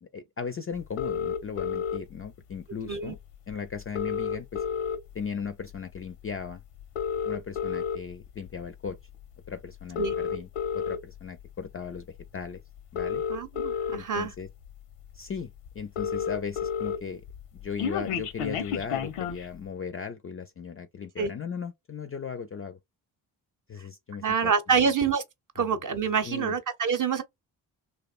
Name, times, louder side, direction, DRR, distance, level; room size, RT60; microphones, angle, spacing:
voice 1, 0.0-3.2 3.5-4.6 5.1-6.6 7.2-9.0 9.5-10.5 10.7-12.6 12.9-13.2 13.9-14.5 15.1-17.2 17.5-22.8 23.7-24.9 25.6-25.7 26.3-26.5, left 6 dB, 30° left, 0.4 m, -37 dB
sound 1, 1.0-2.0 3.2-3.3 3.5-3.6 3.8-5.2 5.7-6.0 6.8-8.0 8.7-8.9 9.8-11.0 12.2-12.3 12.8-14.0 14.6-14.7 15.0-15.1 15.4-15.5 15.7-17.0 17.3-19.4, left 8 dB, 90° left, 0.7 m, -30 dB
voice 2, 13.3-14.3 21.2-21.3 24.2-25.2 25.5-27.2, right 6 dB, 40° right, 0.8 m, -26 dB
2.8 x 2.1 x 2.4 m
supercardioid pair, 45°, 50 cm